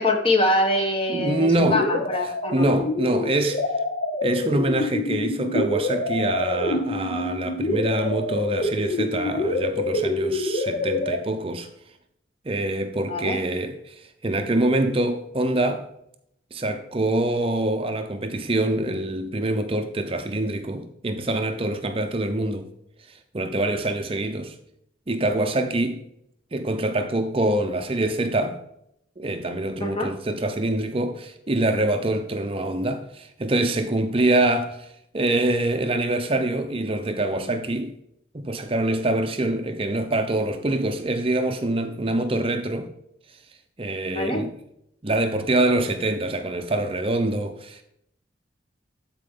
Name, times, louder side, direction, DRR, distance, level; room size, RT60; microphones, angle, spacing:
voice 1, 0.0-2.7 13.1-13.4 29.8-30.1 44.1-44.4, left 1 dB, 30° left, 1.3 m, -24 dB
voice 2, 1.1-2.0 2.5-3.6 4.2-11.7 12.4-15.9 16.5-22.7 23.1-24.6 25.1-26.0 26.5-28.6 29.2-34.9 35.1-38.0 38.3-42.9 43.8-44.5 45.0-47.8, right 1 dB, 30° right, 0.6 m, -25 dB
sound 1, 1.6-11.2, left 2 dB, 45° left, 0.9 m, -26 dB
13.0 x 4.5 x 3.8 m
head